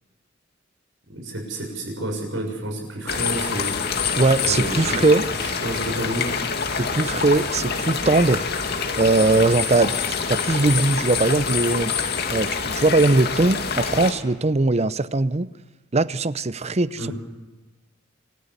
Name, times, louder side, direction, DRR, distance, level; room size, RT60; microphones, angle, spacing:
voice 1, 1.1-3.7 4.4-5.0 5.3-6.3 17.0-17.1, right 1 dB, 75° right, 1 dB, 6.9 m, -30 dB
sound 1, 3.1-14.1, left 5 dB, 55° left, 2.3 m, -26 dB
voice 2, 4.2-5.3 6.7-8.4 9.0-9.9 10.3-11.9 12.3-15.5 15.9-17.1, right 3 dB, 35° right, 16 dB, 0.7 m, -20 dB
26.5 x 14.0 x 8.3 m, 1.2 s
head